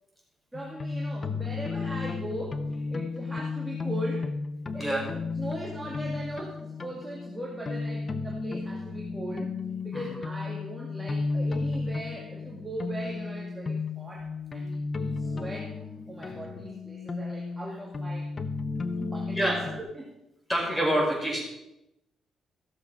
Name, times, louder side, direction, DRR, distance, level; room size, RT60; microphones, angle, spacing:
sound 1, 0.5-19.8, left 4 dB, 35° left, 0.9 m, -34 dB
voice 1, 0.5-4.3 4.7-9.5 9.8-15.7 16.1-18.3 19.0-20.2, right 1 dB, 10° right, -3 dB, 1.9 m, -39 dB
voice 2, 20.5-21.4, right 1 dB, 10° left, -1 dB, 5.2 m, -27 dB
14.0 x 7.1 x 5.3 m, 0.89 s
cardioid pair, 90°, 0 cm